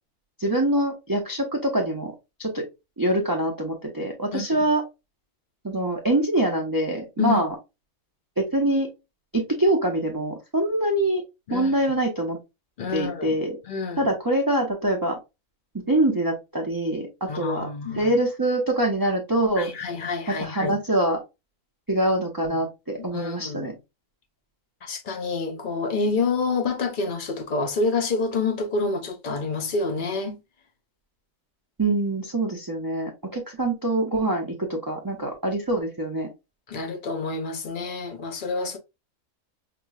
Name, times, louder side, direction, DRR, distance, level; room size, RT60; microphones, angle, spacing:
voice 1, 0.4-2.1 2.4-2.6 3.0-4.8 5.6-7.5 8.4-8.9 9.3-11.2 11.5-12.4 12.9-13.6 14.0-15.2 15.7-17.7 17.9-19.7 20.3-21.2 21.9-23.7 31.8-36.3, right 1 dB, 30° right, 0.4 m, -24 dB
voice 2, 4.3-4.6 7.2-7.4 11.5-11.8 12.8-13.3 13.7-14.1 17.3-18.1 19.6-20.7 23.0-23.7 24.8-30.4 36.7-38.8, left 4 dB, 55° left, 0.6 m, -28 dB
5.9 x 2.1 x 2.4 m
omnidirectional pair, 1.6 m